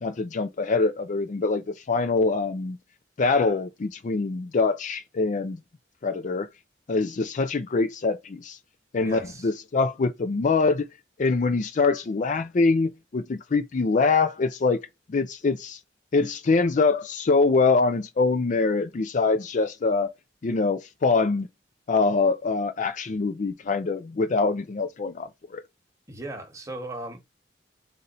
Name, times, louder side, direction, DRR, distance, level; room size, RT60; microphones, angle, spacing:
voice 1, 0.0-2.8 3.2-5.6 6.0-6.5 6.9-8.6 8.9-10.9 11.2-15.8 16.1-20.1 20.4-21.5 21.9-25.6, left 4 dB, 45° left, 0.4 m, -24 dB
voice 2, 9.0-9.5 26.1-27.2, right 2 dB, 20° right, 1.3 m, -37 dB
4.0 x 2.5 x 4.2 m
head